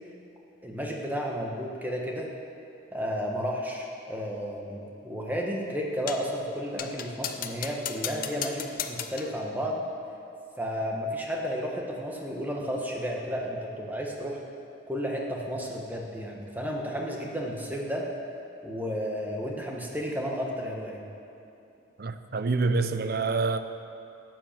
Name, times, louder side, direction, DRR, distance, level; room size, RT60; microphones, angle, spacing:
voice 1, 0.6-2.3 2.9-9.8 10.6-14.4 14.9-18.0 18.6-21.0, equal, 10° right, 1.4 m, -32 dB
sound 1, 6.1-6.3 6.8-9.4, left 8 dB, 45° left, 0.6 m, -36 dB
voice 2, 22.0-23.6, right 3 dB, 50° right, 0.6 m, -26 dB
12.5 x 9.1 x 7.4 m
head